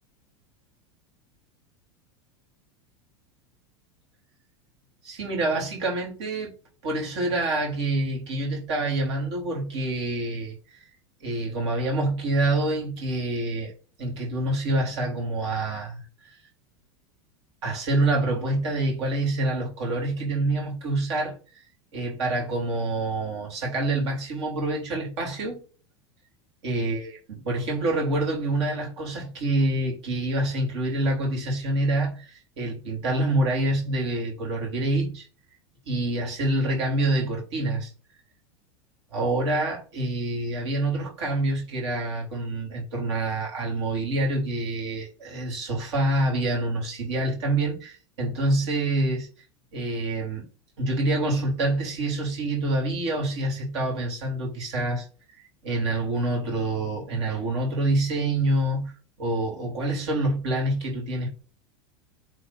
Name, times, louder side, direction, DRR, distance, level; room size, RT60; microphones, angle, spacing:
voice 1, 5.0-6.5 6.8-10.5 11.2-13.7 14.0-16.4 17.6-21.4 21.9-25.6 26.6-35.3 35.9-37.9 39.1-49.3 49.7-50.5 50.8-55.1 55.4-58.9 59.2-61.4, right 2 dB, 80° right, 3.9 m, -26 dB
7.5 x 3.5 x 4.2 m
hypercardioid pair, 110°, 14 cm